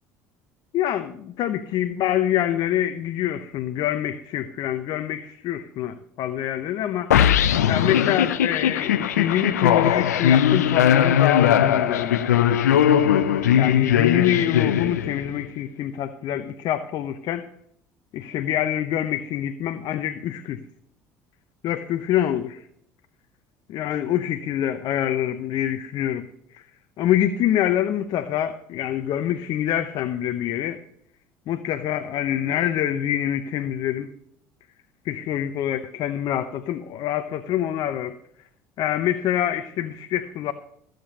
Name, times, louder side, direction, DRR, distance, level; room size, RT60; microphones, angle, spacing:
voice 1, 0.7-7.1 7.7-12.7 13.6-17.5 18.1-20.6 21.6-22.7 23.7-26.3 26.5-26.6 27.0-30.8 31.5-34.1 35.0-38.1 38.8-40.5, left 11 dB, 55° left, 9 dB, 0.8 m, -25 dB
sound 1, 7.1-15.4, left 9 dB, 90° left, 0.6 m, -19 dB
15.0 x 7.8 x 5.3 m, 0.69 s
hypercardioid pair, 70°, 9 cm